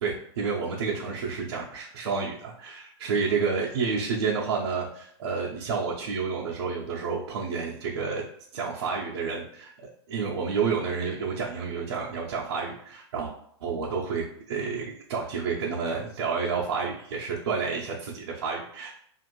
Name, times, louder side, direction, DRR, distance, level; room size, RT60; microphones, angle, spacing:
voice 1, 0.0-8.2 8.5-13.3 13.6-19.0, right 5 dB, 70° right, -4 dB, 0.6 m, -30 dB
2.5 x 2.5 x 2.9 m, 0.66 s
supercardioid pair, 175°, 14 cm